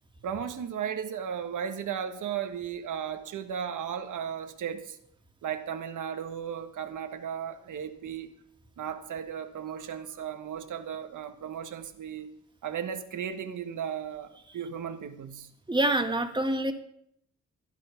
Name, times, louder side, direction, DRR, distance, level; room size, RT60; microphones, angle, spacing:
voice 1, 0.2-5.0 5.4-8.3 8.8-12.3 12.6-15.5, right 8 dB, 90° right, 1.5 m, -35 dB
voice 2, 15.7-16.7, right 1 dB, 15° right, 1.9 m, -26 dB
16.0 x 10.5 x 5.8 m
cardioid pair, 110°, 30 cm